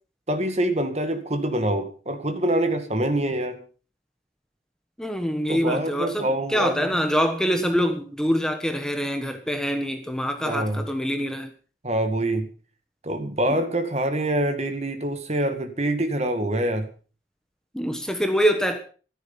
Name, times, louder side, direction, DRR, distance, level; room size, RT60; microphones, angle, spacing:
voice 1, 0.3-3.6 5.5-6.9 10.4-10.8 11.8-12.5 13.0-16.9, right 1 dB, 35° right, 2.0 m, -25 dB
voice 2, 5.0-11.5 13.5-13.6 17.7-18.8, equal, 5° left, 1.3 m, -25 dB
14.5 x 13.0 x 5.7 m
head